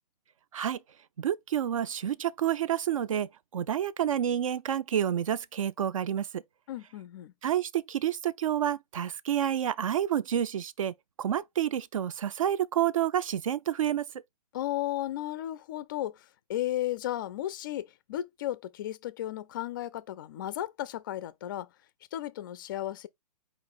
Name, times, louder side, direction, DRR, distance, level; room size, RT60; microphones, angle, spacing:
voice 1, 1.2-6.4 7.4-14.1, right 10 dB, 55° right, 0.4 m, -29 dB
voice 2, 6.7-7.3 14.5-16.2 16.5-21.7 22.1-23.1, left 13 dB, 30° left, 0.4 m, -34 dB
4.6 x 2.9 x 3.7 m
figure-of-eight pair, 125°, 21 cm